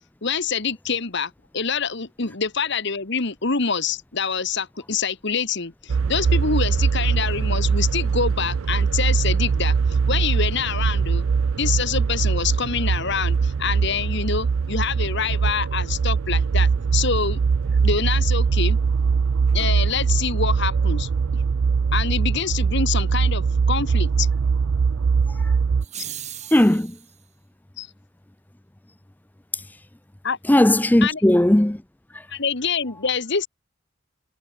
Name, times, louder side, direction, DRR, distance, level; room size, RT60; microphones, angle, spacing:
voice 1, 0.2-11.2 11.6-17.4 17.8-18.8 19.5-21.4 21.9-24.3 27.8-27.9 30.2-30.4 31.0-31.2 32.3-33.5, left 5 dB, 55° left, 1.6 m, -26 dB
sound 1, 5.9-25.8, right 5 dB, 75° right, 0.4 m, -21 dB
sound 2, 25.8-27.1, right 10 dB, 35° right, 3.6 m, -37 dB
voice 2, 26.5-26.9 29.5-29.6 30.5-31.8 32.1-32.2, left 1 dB, 10° left, 0.5 m, -17 dB
head